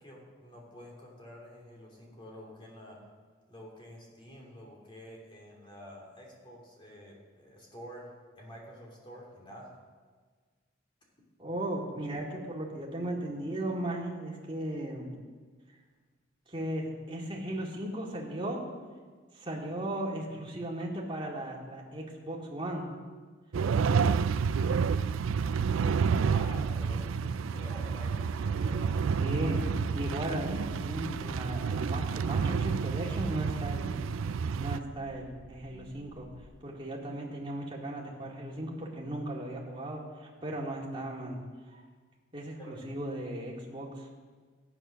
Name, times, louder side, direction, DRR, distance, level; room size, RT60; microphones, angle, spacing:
voice 1, 0.0-3.0 3.5-8.1 8.3-9.7 11.4-11.5 26.1-29.3 29.8-29.9 42.6-42.8, equal, 25° left, -2 dB, 2.9 m, -49 dB
voice 2, 11.4-15.2 16.5-18.6 19.3-22.9 29.2-29.6 29.9-34.1 34.6-36.3 36.6-41.4 41.7-41.8 42.3-44.2, right 1 dB, 25° right, -3 dB, 2.2 m, -36 dB
sound 1, 23.5-34.8, right 6 dB, 80° right, 0.4 m, -29 dB
sound 2, 26.2-36.5, right 2 dB, 50° right, 0.9 m, -52 dB
13.5 x 9.0 x 6.4 m, 1.5 s
head